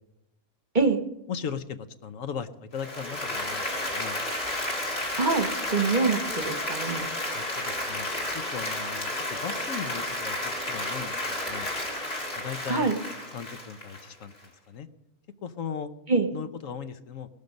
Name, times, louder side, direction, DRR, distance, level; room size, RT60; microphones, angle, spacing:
voice 1, 1.3-4.2 7.3-8.1 8.3-10.4 10.7-11.7 12.3-13.0 13.3-14.9 15.4-15.9 16.3-17.3, left 7 dB, 65° left, 11 dB, 1.2 m, -37 dB
Applause, 2.7-14.4, left 1 dB, 45° left, 3.2 m, -32 dB
voice 2, 5.2-7.1 12.7-13.0 16.1-16.3, right 4 dB, 40° right, 8 dB, 1.0 m, -25 dB
18.5 x 12.0 x 5.3 m, 0.91 s
omnidirectional pair, 1.5 m